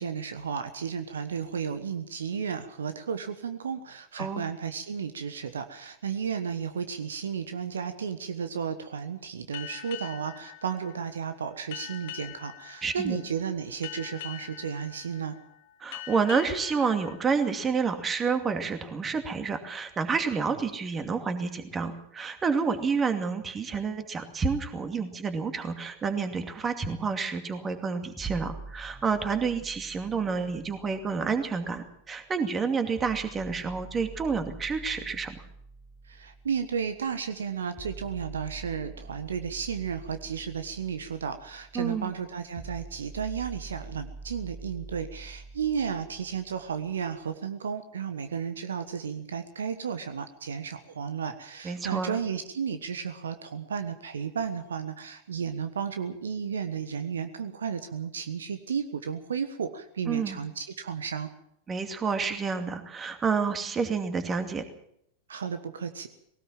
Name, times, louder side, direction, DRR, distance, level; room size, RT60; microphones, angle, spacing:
voice 1, 0.0-15.3 36.0-61.3 65.3-66.1, right 7 dB, 65° right, 10 dB, 1.3 m, -33 dB
voice 2, 4.2-4.5 12.8-13.2 15.8-35.4 41.7-42.1 51.6-52.2 60.1-60.4 61.7-64.6, right 5 dB, 20° right, 8 dB, 2.5 m, -29 dB
sound 1, 9.5-18.7, left 14 dB, 50° left, 1.7 m, -45 dB
sound 2, 28.2-32.2 33.0-47.0, right 3 dB, 5° left, 1.8 m, -46 dB
20.0 x 18.0 x 7.4 m, 0.72 s
figure-of-eight pair, 90°, 0 cm